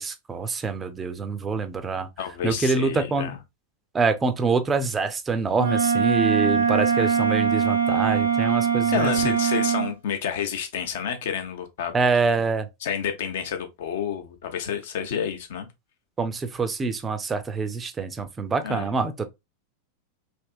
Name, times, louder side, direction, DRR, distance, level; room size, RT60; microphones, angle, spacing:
voice 1, 0.0-2.1 2.4-3.4 3.9-9.3 11.9-12.7 16.2-19.2, right 4 dB, 20° right, 0.5 m, -25 dB
voice 2, 2.2-3.4 8.9-11.9 12.8-15.7 18.6-18.9, left 8 dB, 55° left, 0.7 m, -29 dB
Wind instrument woodwind instrument, 5.6-9.9, right 6 dB, 70° right, 0.7 m, -22 dB
3.4 x 2.8 x 2.4 m
figure-of-eight pair, 90°, 0 cm